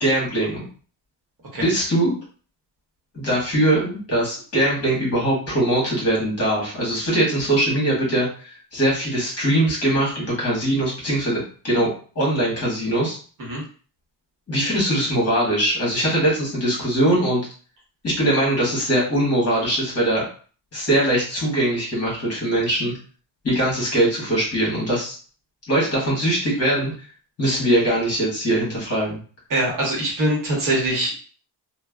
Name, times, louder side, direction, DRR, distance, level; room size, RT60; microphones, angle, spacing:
voice 1, 0.0-0.6 1.6-2.2 3.1-11.9 12.1-13.2 14.5-17.4 18.0-20.2 20.7-23.0 23.4-25.1 25.7-26.9 27.4-29.2, right 1 dB, 35° left, -4 dB, 1.4 m, -21 dB
voice 2, 29.5-31.1, right 1 dB, 45° right, -2 dB, 1.0 m, -23 dB
3.2 x 2.1 x 2.3 m, 0.40 s
cardioid pair, 165°, 44 cm